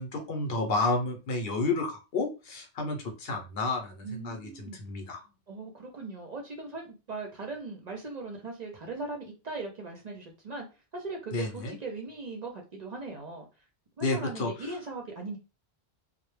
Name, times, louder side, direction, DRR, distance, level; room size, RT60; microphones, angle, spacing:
voice 1, 0.0-5.2 11.3-11.7 14.0-14.5, left 3 dB, 70° left, 3 dB, 0.8 m, -31 dB
voice 2, 4.0-4.9 5.5-10.7 10.9-13.5 14.0-15.4, right 3 dB, 50° right, 1 dB, 0.5 m, -39 dB
2.1 x 2.0 x 3.1 m, 0.30 s
omnidirectional pair, 1.1 m